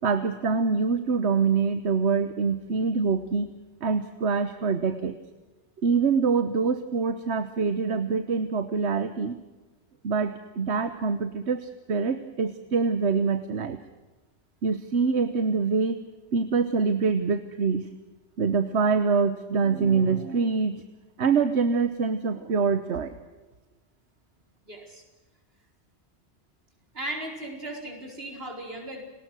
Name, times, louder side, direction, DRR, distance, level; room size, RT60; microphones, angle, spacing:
voice 1, 0.0-3.5 3.8-5.2 5.8-9.4 10.0-13.8 14.6-16.0 16.3-17.9 18.4-20.8 21.2-23.2, right 5 dB, 80° right, 10 dB, 1.4 m, -25 dB
voice 2, 24.6-25.0 26.9-29.0, right 1 dB, 60° right, 2 dB, 5.0 m, -36 dB
30.0 x 19.5 x 6.3 m, 1.2 s
omnidirectional pair, 1.1 m